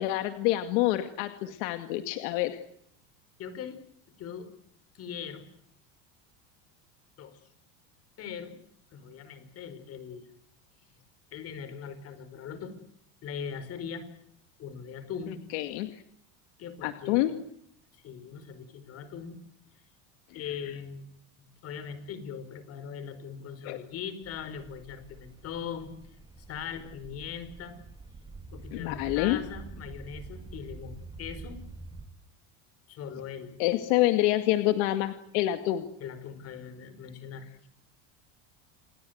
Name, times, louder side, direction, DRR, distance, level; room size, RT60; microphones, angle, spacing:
voice 1, 0.0-2.6 15.5-16.0 16.8-17.3 23.6-23.8 28.7-29.4 33.6-35.9, left 15 dB, 70° left, 8 dB, 2.2 m, -27 dB
voice 2, 3.4-3.8 4.2-4.5 4.9-5.5 7.2-7.4 8.2-8.6 8.9-10.3 11.3-12.7 13.2-14.1 14.6-15.4 16.6-17.3 17.9-19.4 20.3-21.1 21.6-25.9 26.5-27.8 28.5-31.6 32.9-33.6 36.0-37.7, left 7 dB, 40° left, 12 dB, 4.9 m, -40 dB
sound 1, 24.2-32.1, right 3 dB, 10° right, 2.1 m, -46 dB
28.5 x 21.5 x 8.0 m, 0.71 s
supercardioid pair, 140°, 36 cm